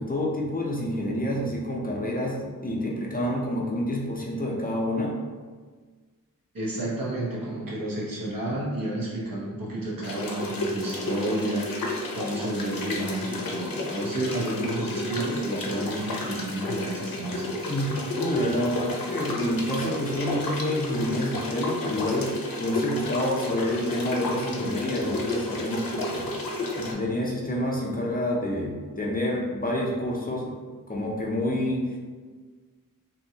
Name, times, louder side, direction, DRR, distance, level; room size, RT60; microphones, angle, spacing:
voice 1, 0.0-5.1 17.7-30.5 30.9-31.8, left 1 dB, 25° left, -3 dB, 0.5 m, -28 dB
voice 2, 6.5-17.7, right 1 dB, 80° right, -5 dB, 0.9 m, -31 dB
sound 1, 10.0-26.9, left 2 dB, 90° left, 0.5 m, -32 dB
2.8 x 2.7 x 2.7 m, 1.4 s
wide cardioid pair, 65°, 34 cm